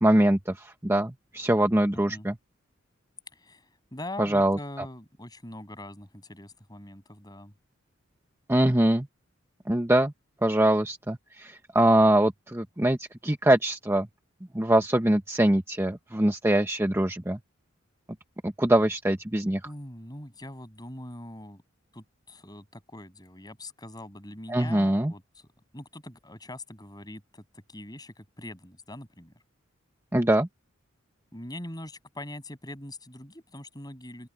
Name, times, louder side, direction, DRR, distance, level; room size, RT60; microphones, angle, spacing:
voice 1, 0.0-2.3 4.2-4.6 8.5-9.1 9.7-10.1 10.4-14.1 14.5-17.4 18.4-19.6 24.5-25.1 30.1-30.5, right 1 dB, 10° right, 1.0 m, -23 dB
voice 2, 1.5-2.3 3.3-7.5 19.6-21.6 21.9-25.5 25.7-29.3 31.3-34.3, left 1 dB, 20° left, 7.9 m, -43 dB
open air
head